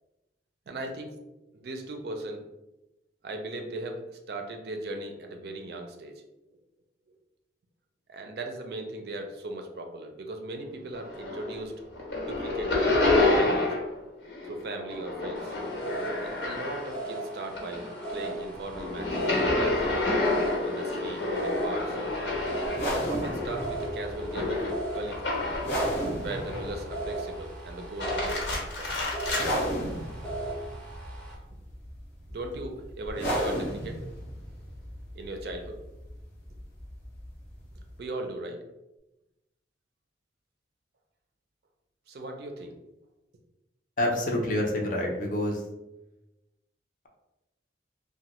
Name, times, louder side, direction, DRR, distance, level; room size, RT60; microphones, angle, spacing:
voice 1, 0.7-1.2 1.5-2.4 3.2-6.1 8.1-11.7 12.3-13.8 14.4-20.2 20.6-22.0 22.9-25.5 26.1-29.0 32.3-34.2 35.1-35.8 38.0-38.6 42.1-42.8, right 2 dB, 60° right, 4 dB, 0.4 m, -38 dB
sound 1, 10.9-11.6 11.9-13.9 14.2-17.1 17.5-25.8 26.3-27.0 27.8-29.5, left 2 dB, 90° left, 1.1 m, -29 dB
sound 2, 15.3-31.3, right 2 dB, 5° left, 0.6 m, -38 dB
sound 3, 22.6-38.0, equal, 70° left, 0.8 m, -35 dB
voice 2, 44.0-45.6, left 1 dB, 45° left, 0 dB, 0.5 m, -27 dB
3.0 x 2.1 x 2.9 m, 0.98 s
head